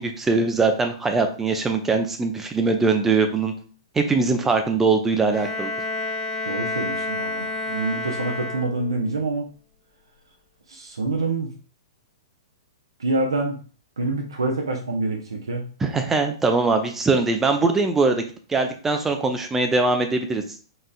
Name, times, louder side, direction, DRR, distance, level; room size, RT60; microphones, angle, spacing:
voice 1, 0.0-3.5 3.9-5.7 15.8-20.4, right 3 dB, 10° right, 5 dB, 0.5 m, -22 dB
Bowed string instrument, 5.3-9.1, left 2 dB, 25° left, 0.7 m, -29 dB
voice 2, 6.4-9.4 10.7-11.5 13.0-13.6 14.0-15.7, right 2 dB, 70° right, 2 dB, 0.7 m, -26 dB
4.1 x 3.6 x 2.3 m, 0.40 s
figure-of-eight pair, 110°, 2 cm